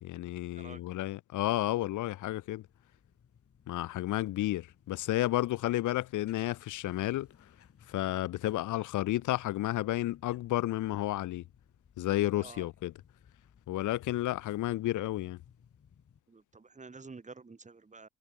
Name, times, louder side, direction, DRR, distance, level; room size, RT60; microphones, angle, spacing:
voice 1, 0.0-2.6 3.7-7.3 7.9-11.4 12.0-12.9 13.7-15.4, left 15 dB, 80° left, 1.2 m, -31 dB
sound 1, 1.8-16.2, left 7 dB, 50° left, 7.8 m, -63 dB
voice 2, 16.3-18.1, right 4 dB, 25° right, 2.3 m, -49 dB
cardioid pair, 90°, 30 cm